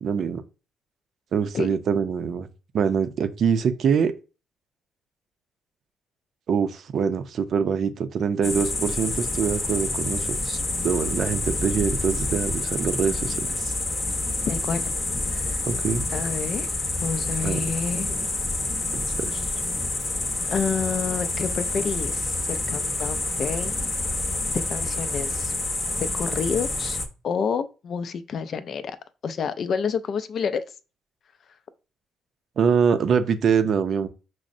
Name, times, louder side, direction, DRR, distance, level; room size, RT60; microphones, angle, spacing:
voice 1, 0.0-0.4 1.3-2.5 2.7-4.1 6.5-13.7 15.7-16.0 17.4-17.6 19.2-19.5 32.6-34.1, right 6 dB, 60° right, 0.5 m, -24 dB
sound 1, 8.4-27.1, left 2 dB, 30° left, 0.7 m, -28 dB
voice 2, 14.5-15.0 15.3-15.6 16.1-16.7 17.0-18.3 20.4-23.7 24.5-25.5 26.1-27.0 27.2-29.0 29.2-30.6, left 6 dB, 60° left, 0.4 m, -29 dB
5.9 x 2.1 x 2.5 m
cardioid pair, 90°, 0 cm